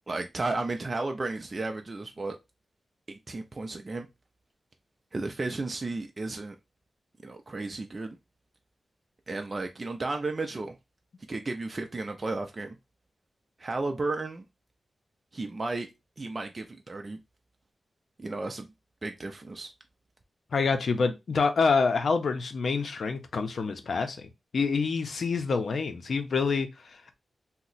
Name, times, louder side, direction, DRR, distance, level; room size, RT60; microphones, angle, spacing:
voice 1, 0.1-2.4 3.1-4.1 5.1-6.6 7.2-8.2 9.3-10.7 11.3-12.8 13.6-14.4 15.3-15.9 16.2-17.2 18.2-18.7 19.0-19.7, right 3 dB, 35° right, 0.4 m, -33 dB
voice 2, 20.5-27.1, left 4 dB, 65° left, 0.6 m, -27 dB
2.8 x 2.1 x 4.0 m
wide cardioid pair, 105°, 0 cm